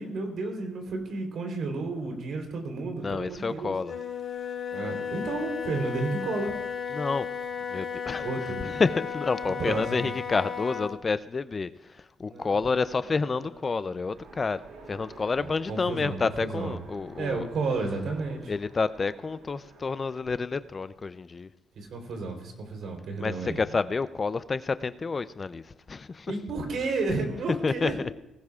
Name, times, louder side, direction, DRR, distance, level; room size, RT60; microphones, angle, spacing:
voice 1, 0.0-3.7 4.7-6.5 8.2-8.6 9.6-10.1 12.2-12.8 13.7-13.8 15.4-16.2 16.4-16.8 17.2-18.5 21.8-23.6 26.3-28.0, right 3 dB, 65° right, 3 dB, 3.5 m, -32 dB
voice 2, 3.0-4.0 6.9-7.3 7.7-14.6 14.9-17.5 18.5-21.5 23.2-26.3 27.6-28.1, left 4 dB, 35° left, 14 dB, 0.4 m, -29 dB
Wind instrument woodwind instrument, 3.8-11.0, left 7 dB, 55° left, 4.7 m, -34 dB
Train, 14.1-21.1, right 4 dB, 90° right, 4.0 m, -51 dB
19.5 x 17.0 x 2.4 m, 0.95 s
cardioid pair, 90°, 0 cm